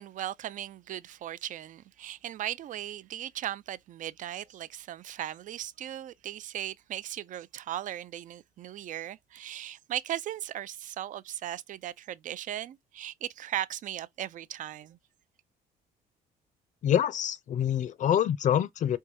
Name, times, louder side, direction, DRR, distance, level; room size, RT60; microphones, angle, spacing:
voice 1, 0.0-15.0, right 12 dB, 50° right, 0.4 m, -37 dB
voice 2, 16.8-19.0, left 10 dB, 45° left, 0.5 m, -26 dB
4.5 x 2.3 x 2.7 m
cardioid pair, 110°, 17 cm